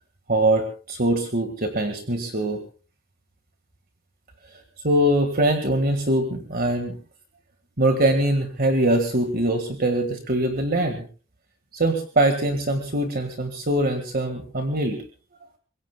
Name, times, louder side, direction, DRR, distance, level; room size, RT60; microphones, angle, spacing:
voice 1, 0.3-2.6 4.8-7.0 7.8-11.0 11.7-15.0, right 1 dB, 40° right, 5 dB, 1.8 m, -22 dB
25.0 x 21.5 x 2.3 m, 0.36 s
head